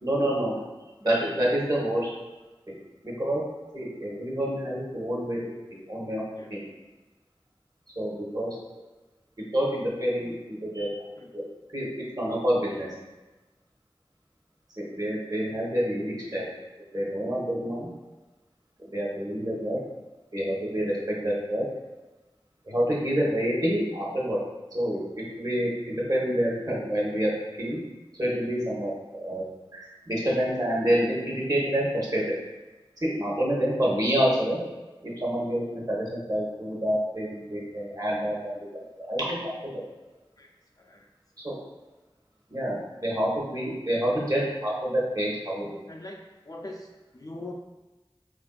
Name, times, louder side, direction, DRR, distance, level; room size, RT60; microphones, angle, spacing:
voice 1, 0.0-0.6 1.0-2.1 2.7-2.8 3.0-3.4 3.7-6.2 6.5-6.6 8.0-8.6 9.5-10.9 11.3-11.4 11.7-12.9 14.8-16.5 16.9-17.9 18.9-19.8 20.3-21.7 22.7-24.4 24.7-27.3 27.6-27.8 28.2-29.4 29.7-32.3 33.0-34.6 35.0-38.5 39.0-39.4 39.7-39.8 41.4-41.6 42.5-45.7, equal, 40° right, -5 dB, 0.9 m, -27 dB
voice 2, 40.8-41.1 45.9-46.2 46.4-46.9 47.1-47.5, left 2 dB, 40° left, 0 dB, 0.4 m, -41 dB
3.6 x 2.5 x 2.3 m, 1.1 s
wide cardioid pair, 40°, 10 cm